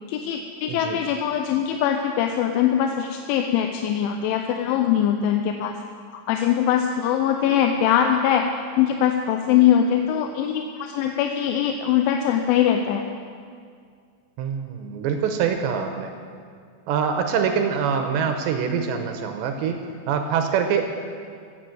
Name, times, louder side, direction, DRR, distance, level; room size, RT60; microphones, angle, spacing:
voice 1, 0.1-5.7 6.1-13.0, left 9 dB, 80° left, 4 dB, 2.9 m, -22 dB
voice 2, 0.7-1.0 14.4-16.1 16.9-19.8 20.1-20.8, right 7 dB, 80° right, 5 dB, 2.7 m, -24 dB
15.5 x 8.9 x 7.7 m, 2.2 s
omnidirectional pair, 5.8 m